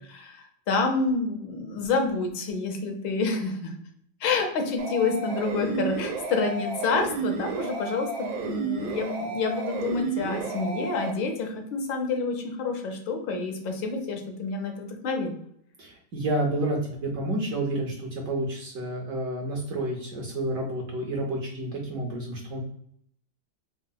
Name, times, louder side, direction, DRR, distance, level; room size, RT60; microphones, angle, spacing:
voice 1, 0.1-3.7 4.2-15.3, left 4 dB, 80° left, 4 dB, 1.4 m, -28 dB
sound 1, 4.8-11.1, right 4 dB, 90° right, 1.3 m, -32 dB
voice 2, 15.8-22.6, right 1 dB, 70° right, 0 dB, 0.8 m, -30 dB
4.6 x 2.0 x 2.2 m, 0.68 s
omnidirectional pair, 2.1 m